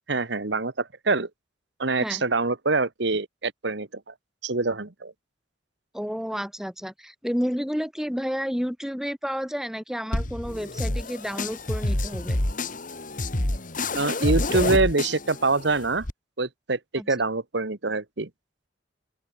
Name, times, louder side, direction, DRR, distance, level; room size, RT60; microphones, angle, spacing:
voice 1, 0.1-1.3 1.8-4.1 4.4-5.1 13.9-16.0 16.4-18.3, right 3 dB, 65° right, 1.4 m, -25 dB
voice 2, 5.9-12.4 17.0-17.1, equal, 5° right, 2.5 m, -30 dB
sound 1, 10.1-16.1, left 1 dB, 45° left, 2.5 m, -28 dB
open air
head